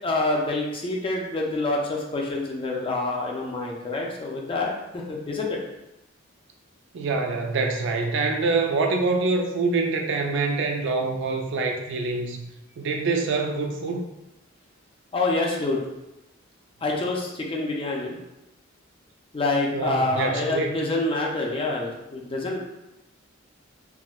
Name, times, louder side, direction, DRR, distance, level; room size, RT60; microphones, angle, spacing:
voice 1, 0.0-5.6 15.1-15.8 16.8-18.2 19.3-22.6, left 2 dB, 25° left, -1 dB, 0.4 m, -27 dB
voice 2, 6.9-14.1 19.7-20.7, right 3 dB, 60° right, 3 dB, 0.4 m, -25 dB
3.5 x 2.1 x 2.3 m, 0.93 s
head